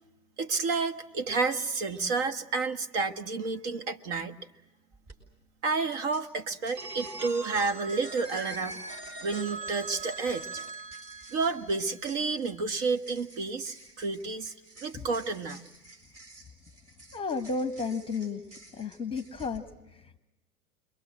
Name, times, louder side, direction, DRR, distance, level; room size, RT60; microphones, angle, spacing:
voice 1, 0.4-4.3 5.6-9.0 9.2-10.5 11.3-15.6, right 4 dB, 45° right, 8 dB, 1.6 m, -30 dB
sound 1, 4.9-5.2 5.9-19.6, right 2 dB, 30° right, 6.6 m, -53 dB
Telephone, 6.7-12.5, right 3 dB, 85° right, 1.9 m, -41 dB
voice 2, 17.1-18.4 18.7-20.2, left 4 dB, 10° left, 10 dB, 1.3 m, -33 dB
28.0 x 23.0 x 7.7 m, 0.96 s
figure-of-eight pair, 100°, 47 cm